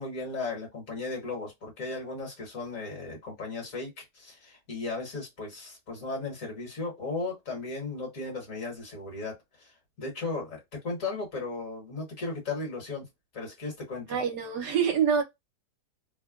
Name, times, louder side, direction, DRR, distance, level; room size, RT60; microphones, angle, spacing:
voice 1, 0.0-13.0 13.3-14.2, left 3 dB, 50° left, 1.6 m, -36 dB
voice 2, 14.1-15.2, right 7 dB, 70° right, 1.3 m, -25 dB
3.3 x 2.2 x 2.3 m
omnidirectional pair, 1.8 m